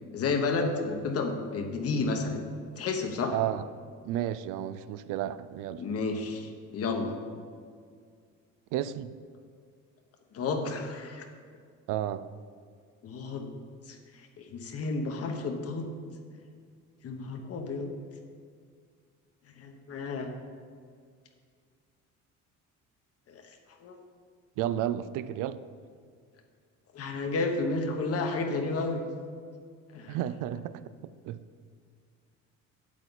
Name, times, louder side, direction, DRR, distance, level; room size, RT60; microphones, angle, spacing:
voice 1, 0.1-2.4 2.8-3.3 5.8-7.1 10.3-11.2 13.0-13.5 13.9-14.0 14.4-15.9 17.0-17.9 19.6-20.3 23.3-23.4 23.8-23.9 26.9-29.0 29.9-30.2, left 3 dB, 50° left, 4 dB, 1.1 m, -31 dB
voice 2, 3.3-3.7 4.0-5.8 8.7-9.1 11.9-12.3 24.6-25.6 30.1-31.4, right 12 dB, 85° right, 14 dB, 0.5 m, -32 dB
8.5 x 8.2 x 4.0 m, 2.1 s
cardioid pair, 130°, 31 cm